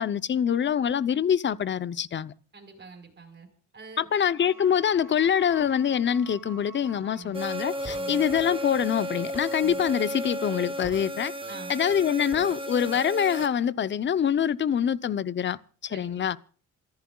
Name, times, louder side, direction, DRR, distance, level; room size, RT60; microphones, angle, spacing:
voice 1, 0.0-2.3 4.0-11.3 11.7-15.6 15.9-16.4, left 8 dB, 40° left, 0.7 m, -25 dB
voice 2, 2.5-3.5 3.7-4.1 7.1-7.4 7.9-8.3 9.6-9.9 11.5-11.8 15.9-16.4, right 4 dB, 35° right, 4.7 m, -46 dB
sound 1, 4.4-12.5, equal, 85° left, 4.0 m, -51 dB
sound 2, 7.3-13.5, equal, 15° right, 1.1 m, -34 dB
27.5 x 14.5 x 2.4 m
cardioid pair, 90°, 30 cm